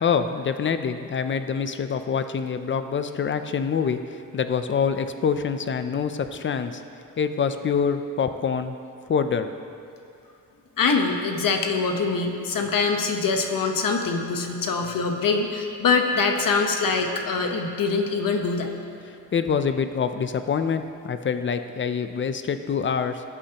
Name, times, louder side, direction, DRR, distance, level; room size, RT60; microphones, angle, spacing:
voice 1, 0.0-6.8 7.2-8.8 9.1-9.5 19.3-23.2, left 6 dB, 35° left, 9 dB, 0.5 m, -25 dB
voice 2, 10.8-18.7, left 4 dB, 75° left, 4 dB, 1.1 m, -24 dB
18.5 x 8.4 x 2.9 m, 2.6 s
wide cardioid pair, 165°, 33 cm